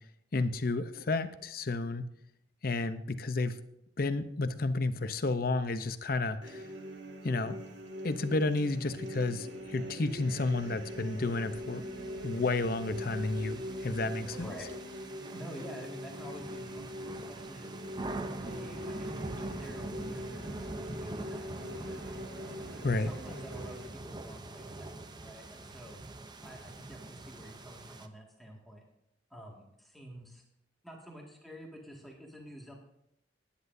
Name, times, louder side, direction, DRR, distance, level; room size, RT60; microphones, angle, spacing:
voice 1, 0.3-2.1 2.6-3.6 4.0-6.6 7.2-7.6 8.0-11.8 12.2-14.5 22.8-23.1, left 3 dB, 55° left, 11 dB, 0.7 m, -31 dB
sound 1, 6.4-23.9, equal, 90° right, 1.9 m, -43 dB
sound 2, 10.8-28.1, right 2 dB, 25° right, 0.7 m, -44 dB
voice 2, 14.3-14.7 15.3-17.8 18.4-22.2 22.7-26.0 26.4-28.8 29.3-30.4 30.8-32.7, equal, ahead, -2 dB, 2.0 m, -49 dB
19.0 x 10.0 x 2.7 m, 0.79 s
head